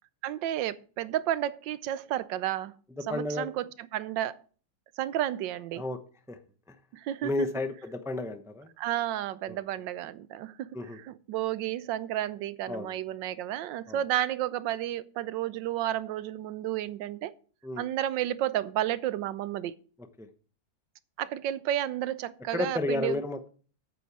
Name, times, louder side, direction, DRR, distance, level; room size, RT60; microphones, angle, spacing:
voice 1, 0.2-2.7 3.1-4.4 5.0-5.8 6.9-7.5 8.8-17.3 17.8-19.7 21.2-23.2, right 12 dB, 85° right, 1.4 m, -32 dB
voice 2, 3.0-3.5 5.7-6.0 6.3-6.4 7.2-8.7 9.5-9.6 10.7-11.0 12.7-12.9 13.9-14.0 17.6-17.9 20.2-20.3 22.5-23.5, left 2 dB, 5° right, 0.4 m, -32 dB
8.9 x 8.7 x 4.7 m
omnidirectional pair, 1.9 m